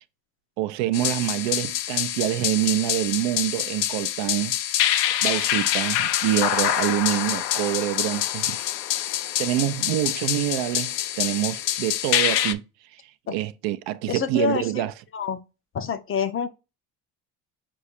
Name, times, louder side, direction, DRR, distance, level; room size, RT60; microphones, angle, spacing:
voice 1, 0.6-4.8 5.2-8.6 9.4-12.6 12.9-13.0 13.3-14.9, right 14 dB, 60° right, 0.5 m, -26 dB
sound 1, 0.9-12.5, left 12 dB, 85° left, 0.6 m, -26 dB
voice 2, 14.1-14.6 15.1-15.4 15.7-16.5, left 7 dB, 30° left, 0.5 m, -26 dB
4.8 x 2.4 x 4.1 m
hypercardioid pair, 65°, 48 cm